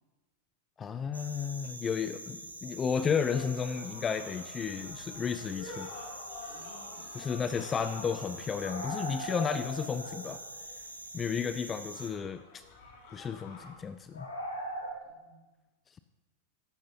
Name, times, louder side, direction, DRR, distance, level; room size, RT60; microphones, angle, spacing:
voice 1, 0.8-5.9 7.1-10.4 11.1-12.6 13.1-14.3, left 6 dB, 20° left, 12 dB, 0.3 m, -33 dB
sound 1, 1.1-12.1, right 1 dB, 85° right, 1.0 m, -45 dB
sound 2, 2.9-10.2 11.8-13.7, left 3 dB, 45° left, 2.1 m, -49 dB
sound 3, 5.9-6.0 6.4-6.5 6.7-6.8 8.6-10.6 11.2-11.3 12.6-12.9 14.1-14.9, right 1 dB, 75° left, 2.0 m, -39 dB
voice 2, 6.5-7.2 15.0-15.5, right 3 dB, 40° right, -3 dB, 3.6 m, -59 dB
13.0 x 11.0 x 2.8 m, 1.2 s
figure-of-eight pair, 90°, 0 cm